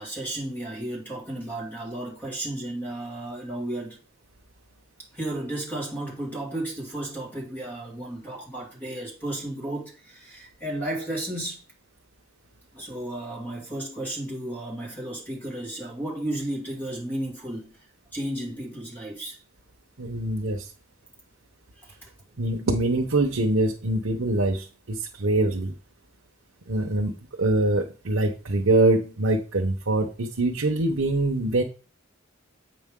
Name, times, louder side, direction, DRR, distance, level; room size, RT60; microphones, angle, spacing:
voice 1, 0.0-4.0 5.1-11.6 12.7-17.7 18.1-19.4 21.7-22.1, right 1 dB, 10° left, 2.4 m, -33 dB
voice 2, 20.0-20.6 22.4-25.7 26.7-27.1 27.4-31.6, right 2 dB, 75° right, 1.0 m, -24 dB
8.2 x 5.1 x 3.7 m
head